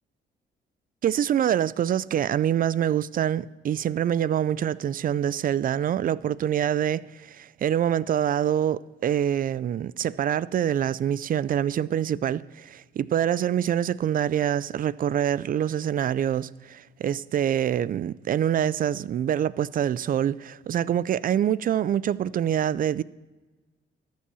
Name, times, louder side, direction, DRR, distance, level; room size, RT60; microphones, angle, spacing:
voice 1, 1.0-23.0, right 10 dB, 45° right, 0.4 m, -25 dB
13.5 x 7.5 x 5.6 m
cardioid pair, 90°, 20 cm